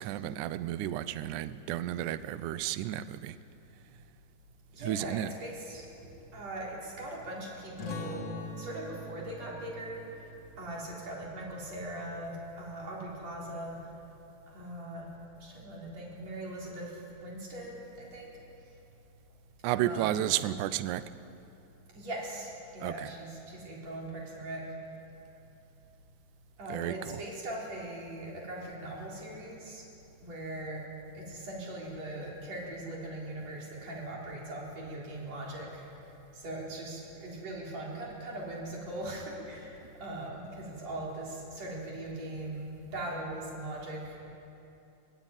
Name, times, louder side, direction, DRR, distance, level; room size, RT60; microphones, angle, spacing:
voice 1, 0.0-3.4 4.8-5.3 19.6-21.1 22.8-23.1 26.7-27.2, right 13 dB, 85° right, 14 dB, 1.7 m, -32 dB
voice 2, 4.7-8.2 8.6-10.0 10.6-13.8 14.5-15.1 15.4-16.9 17.2-18.3 19.8-20.3 22.0-24.6 26.6-29.8 30.2-30.8 31.1-35.8 36.3-44.2, right 1 dB, 45° right, -4 dB, 5.2 m, -40 dB
sound 1, 7.8-13.0, left 2 dB, 50° left, 2.5 m, -45 dB
23.0 x 18.0 x 9.0 m, 2.8 s
omnidirectional pair, 4.3 m